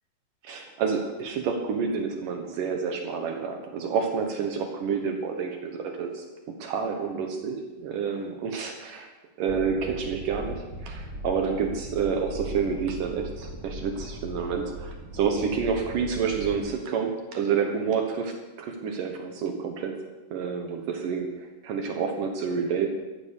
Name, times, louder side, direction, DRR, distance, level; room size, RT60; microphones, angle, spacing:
voice 1, 0.4-9.1 9.4-20.0 20.3-22.9, right 6 dB, 70° right, 4 dB, 2.8 m, -29 dB
sound 1, 9.5-16.7, equal, 50° right, 1.2 m, -39 dB
14.0 x 12.5 x 6.6 m, 1.2 s
omnidirectional pair, 4.1 m